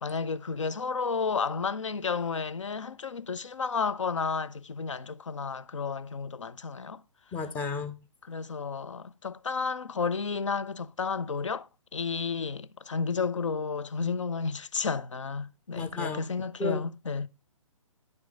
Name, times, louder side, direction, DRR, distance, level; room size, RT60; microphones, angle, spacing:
voice 1, 0.0-7.0 8.2-17.3, left 5 dB, 65° left, 0.6 m, -32 dB
voice 2, 7.3-7.9 14.0-14.2 15.7-16.2 16.6-16.8, left 4 dB, 10° left, 0.6 m, -33 dB
10.5 x 4.5 x 3.7 m
figure-of-eight pair, 130°, 17 cm